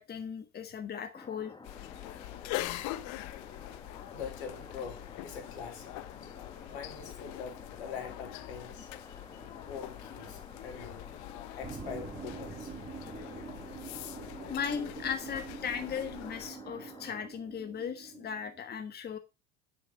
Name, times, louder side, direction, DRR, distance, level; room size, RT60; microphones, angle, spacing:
voice 1, 0.0-1.5 8.8-9.4 13.0-13.2 14.5-19.2, left 7 dB, 30° left, 1.4 m, -38 dB
sound 1, 1.1-17.3, left 3 dB, 15° left, 1.9 m, -51 dB
sound 2, 1.6-16.5, left 17 dB, 55° left, 1.0 m, -44 dB
voice 2, 4.1-5.9 6.7-8.9 9.7-11.0 11.6-12.7, left 6 dB, 75° left, 3.9 m, -43 dB
sound 3, 11.6-18.6, right 5 dB, 20° right, 2.6 m, -46 dB
10.0 x 7.0 x 5.4 m
hypercardioid pair, 75°, 33 cm